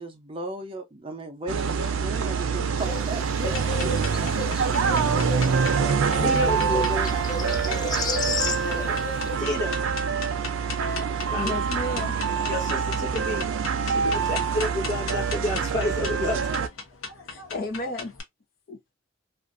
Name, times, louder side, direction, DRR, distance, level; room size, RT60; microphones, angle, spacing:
voice 1, 0.0-3.9 4.2-4.8 5.8-8.1, right 1 dB, 25° right, 0.6 m, -36 dB
sound 1, 1.5-16.7, right 6 dB, 85° right, 0.5 m, -25 dB
sound 2, 2.8-9.4, left 3 dB, 20° left, 0.3 m, -33 dB
sound 3, 3.5-18.2, left 4 dB, 90° left, 0.8 m, -38 dB
voice 2, 6.0-6.8 8.6-9.8 11.3-11.5 12.5-13.5 13.8-14.0 14.3-16.7, left 1 dB, 65° left, 1.1 m, -30 dB
voice 3, 11.3-12.1 14.0-14.2 17.2-18.1 18.7-18.9, left 2 dB, 45° left, 0.7 m, -33 dB
2.5 x 2.5 x 2.4 m
head